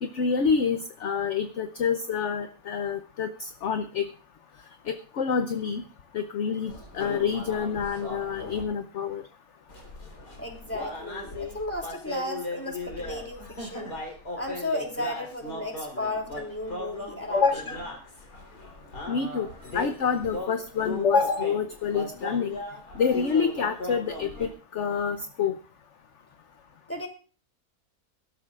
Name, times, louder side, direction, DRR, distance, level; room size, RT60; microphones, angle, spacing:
voice 1, 0.0-4.1 4.9-5.8 6.1-9.2 17.3-17.8 19.1-19.5 19.7-22.6 23.0-25.5, left 6 dB, 55° left, 8 dB, 1.0 m, -27 dB
sound 1, 6.7-8.6 9.7-24.5, left 2 dB, 85° left, 4.5 m, -38 dB
voice 2, 10.4-13.9 14.4-17.4 26.9-27.1, left 1 dB, 10° left, 1 dB, 3.0 m, -34 dB
24.5 x 12.5 x 2.5 m, 0.36 s
omnidirectional pair, 1.6 m